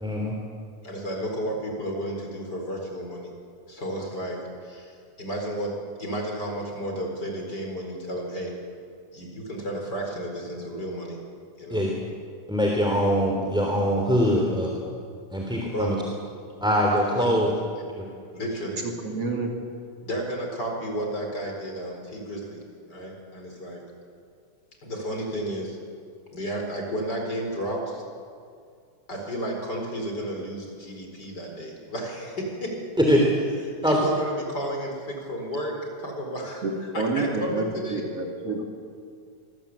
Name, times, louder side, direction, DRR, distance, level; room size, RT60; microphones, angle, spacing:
voice 1, 0.0-0.3 11.7-11.9 12.5-14.7 15.3-15.9 16.6-17.5 18.0-18.1 33.0-33.2 33.8-34.0, equal, ahead, -2 dB, 2.9 m, -22 dB
voice 2, 0.8-3.3 3.7-8.5 9.1-11.2 11.6-11.8 15.7-16.0 17.1-17.4 18.3-18.9 20.0-22.6 22.9-23.8 24.8-25.8 26.3-28.0 29.1-32.8 33.8-38.0, equal, 30° left, 1 dB, 4.8 m, -32 dB
voice 3, 18.8-19.5 36.6-38.6, right 3 dB, 50° right, 1 dB, 3.4 m, -29 dB
25.5 x 21.0 x 8.6 m, 2.3 s
omnidirectional pair, 3.6 m